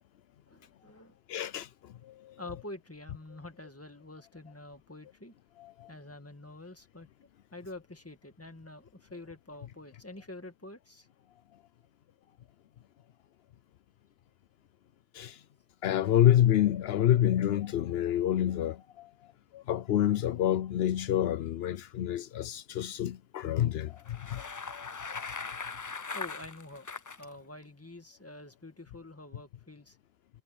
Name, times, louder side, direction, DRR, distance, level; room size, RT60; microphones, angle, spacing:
voice 1, 0.5-1.2 2.4-5.3 5.9-7.1 7.5-11.1 26.1-26.9 27.2-30.0, left 2 dB, 15° left, 1.8 m, -47 dB
voice 2, 1.3-1.7 2.0-2.3 5.8-5.9 15.1-15.4 15.8-19.1 19.5-24.8, left 11 dB, 80° left, 0.8 m, -28 dB
Bicycle, 24.0-27.2, left 4 dB, 30° left, 0.3 m, -40 dB
omnidirectional pair, 1.0 m